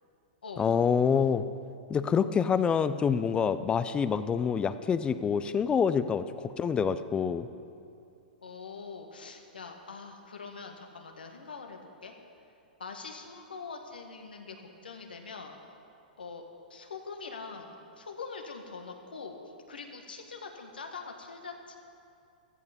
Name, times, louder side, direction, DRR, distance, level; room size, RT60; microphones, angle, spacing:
voice 1, 0.6-1.5 1.9-7.5, left 6 dB, 20° left, 13 dB, 0.6 m, -26 dB
voice 2, 8.4-12.1 12.8-15.6 16.2-16.4 16.7-19.4 19.7-21.8, left 4 dB, 85° left, 3 dB, 1.9 m, -43 dB
15.0 x 14.0 x 5.4 m, 2.5 s
hypercardioid pair, 110°, 5 cm